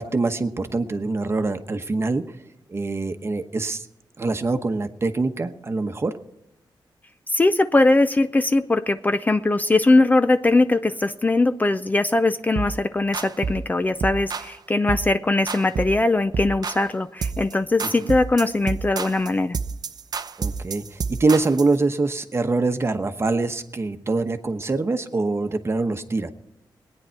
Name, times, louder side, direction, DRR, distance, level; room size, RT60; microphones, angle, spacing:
voice 1, 0.0-2.2 2.7-3.9 4.2-6.1 18.0-18.1 20.4-26.3, right 3 dB, 30° right, 8 dB, 1.0 m, -24 dB
voice 2, 7.3-19.6, left 2 dB, 20° left, 10 dB, 0.5 m, -20 dB
sound 1, 12.6-12.8 13.1-13.7 14.0-14.5 14.9-15.1 15.5-16.0 16.3-16.9 17.2-17.5 17.8-21.7, right 5 dB, 55° right, 0.6 m, -29 dB
20.0 x 9.7 x 4.5 m, 0.90 s
wide cardioid pair, 105°, 8 cm